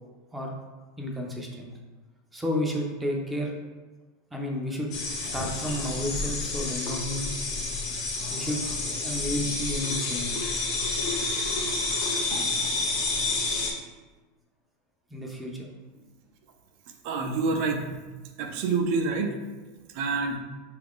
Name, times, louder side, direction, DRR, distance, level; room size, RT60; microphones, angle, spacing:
voice 1, 1.0-1.7 2.3-3.5 4.3-4.9 5.2-7.3 8.3-8.6 8.9-10.4 15.1-15.7, equal, 10° right, -1 dB, 0.5 m, -31 dB
sound 1, 4.9-13.7, left 3 dB, 50° left, 0.8 m, -29 dB
voice 2, 17.0-17.9 18.4-19.4 19.9-20.4, right 4 dB, 55° right, 4 dB, 0.4 m, -27 dB
3.9 x 2.4 x 3.5 m, 1.2 s
supercardioid pair, 140°, 0 cm